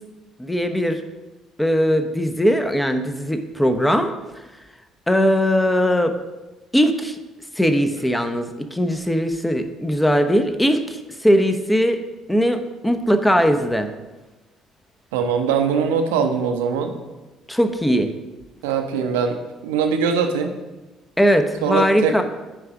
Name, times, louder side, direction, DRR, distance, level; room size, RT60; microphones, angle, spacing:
voice 1, 0.4-1.0 1.6-4.1 5.1-6.1 6.7-7.2 7.6-12.0 12.3-13.9 17.5-18.1 21.2-22.2, equal, 5° left, 7 dB, 0.8 m, -19 dB
voice 2, 15.1-16.9 18.6-19.4 19.6-20.5 21.6-22.2, right 6 dB, 75° right, 5 dB, 0.7 m, -21 dB
9.0 x 3.4 x 5.9 m, 1.1 s
figure-of-eight pair, 50°, 0 cm